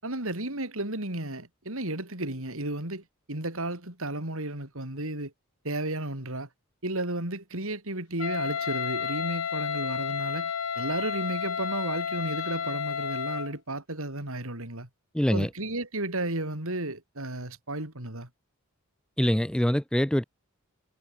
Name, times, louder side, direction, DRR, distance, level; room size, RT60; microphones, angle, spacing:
voice 1, 0.0-5.3 5.6-6.5 6.8-14.9 15.3-18.3, right 2 dB, 65° right, 5.5 m, -33 dB
Wind instrument woodwind instrument, 8.2-13.5, left 7 dB, 85° left, 0.8 m, -31 dB
voice 2, 15.1-15.5 19.2-20.2, equal, 5° left, 0.7 m, -24 dB
head